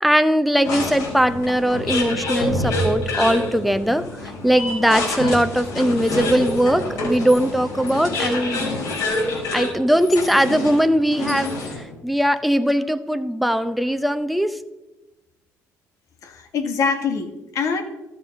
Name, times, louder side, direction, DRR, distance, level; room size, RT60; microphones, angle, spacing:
voice 1, 0.0-4.0 4.4-8.8 9.5-11.6 12.0-14.5, equal, ahead, 10 dB, 0.7 m, -20 dB
sound 1, 0.6-11.9, left 2 dB, 80° left, 4.2 m, -27 dB
voice 2, 16.2-17.8, left 5 dB, 65° left, 6 dB, 1.6 m, -24 dB
13.0 x 6.8 x 5.3 m, 1.0 s
supercardioid pair, 75°, 6 cm